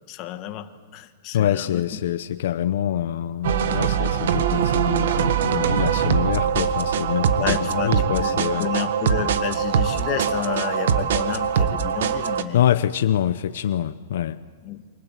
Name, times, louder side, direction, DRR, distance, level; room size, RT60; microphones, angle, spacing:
voice 1, 0.1-2.0 3.9-4.1 7.3-12.6 14.6-14.8, left 11 dB, 30° left, 7 dB, 1.5 m, -31 dB
voice 2, 1.3-8.7 12.5-14.4, left 10 dB, 65° left, 12 dB, 0.8 m, -25 dB
sound 1, 3.4-12.4, right 8 dB, 70° right, 1.7 m, -22 dB
28.5 x 25.5 x 7.5 m, 1.5 s
supercardioid pair, 165°, 0 cm